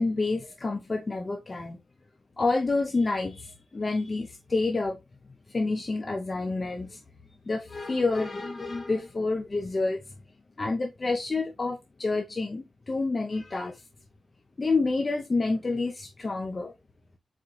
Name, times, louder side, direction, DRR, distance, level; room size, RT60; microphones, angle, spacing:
voice 1, 0.0-1.8 2.4-5.0 5.5-7.0 7.5-10.0 10.6-13.8 14.6-16.7, left 3 dB, 45° left, 0.7 m, -28 dB
4.3 x 3.8 x 3.0 m
cardioid pair, 60°, 0 cm